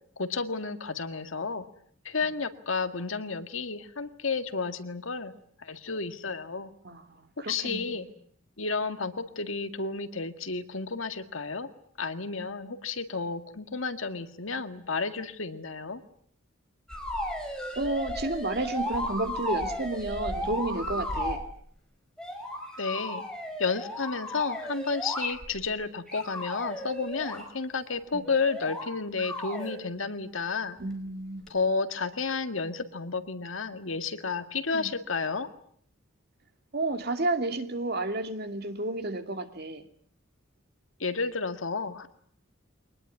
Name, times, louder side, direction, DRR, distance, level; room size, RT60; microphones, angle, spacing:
voice 1, 0.2-1.7 2.0-5.3 5.6-6.7 7.5-8.1 8.6-11.7 12.0-16.0 22.8-23.2 23.6-30.8 31.5-35.5 41.0-42.1, left 4 dB, 75° left, 2.0 m, -31 dB
voice 2, 6.8-8.1 17.8-21.4 28.1-28.2 30.8-31.5 34.7-35.0 36.7-39.8, right 2 dB, 50° right, 2.6 m, -31 dB
sound 1, 16.9-21.4 22.2-25.7 26.1-27.4 28.2-28.9 29.2-29.8 31.5-31.6, equal, 5° left, 5.5 m, -35 dB
24.0 x 20.0 x 9.6 m
head